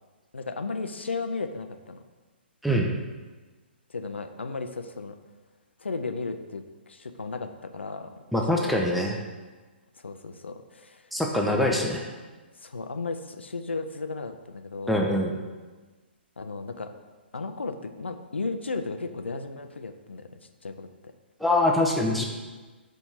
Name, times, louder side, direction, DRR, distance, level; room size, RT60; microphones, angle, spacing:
voice 1, 0.3-2.0 3.9-5.2 5.8-8.1 8.6-9.0 10.0-11.1 11.5-11.8 12.6-15.0 16.4-16.9 17.3-20.3 20.6-21.1, left 3 dB, 80° left, 7 dB, 0.4 m, -35 dB
voice 2, 8.3-9.1 11.1-12.0 14.9-15.4 21.4-22.3, left 1 dB, ahead, -1 dB, 0.4 m, -24 dB
4.4 x 2.6 x 4.4 m, 1.3 s
figure-of-eight pair, 125°, 6 cm